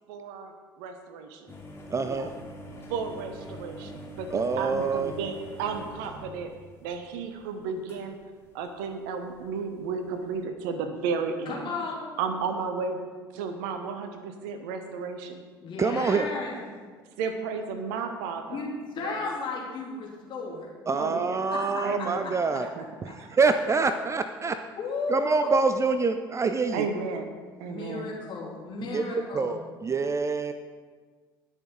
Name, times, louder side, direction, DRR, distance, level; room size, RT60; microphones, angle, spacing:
voice 1, 0.1-0.5 0.8-1.5 2.0-2.3 2.9-6.5 6.8-8.1 8.5-11.7 12.2-13.0 13.3-15.4 17.2-18.6 18.9-19.2 21.0-21.5 21.8-22.9 23.2-23.3 26.7-27.3 27.6-28.1, right 5 dB, 65° right, 1.0 m, -33 dB
sound 1, 1.5-7.3 7.9-9.4 9.7-9.9 10.2-10.4, equal, 20° left, 2.8 m, -44 dB
voice 2, 1.9-2.3 4.3-5.1 15.8-16.3 20.9-22.7 23.3-24.6 25.1-26.9 28.9-30.5, right 4 dB, 25° right, 0.5 m, -26 dB
voice 3, 11.5-12.0 15.6-16.6 18.5-20.7 21.5-21.8 23.1-23.2 24.8-25.5 27.6-29.6, left 3 dB, 45° left, 3.1 m, -34 dB
19.0 x 6.5 x 3.9 m
figure-of-eight pair, 60°, 12 cm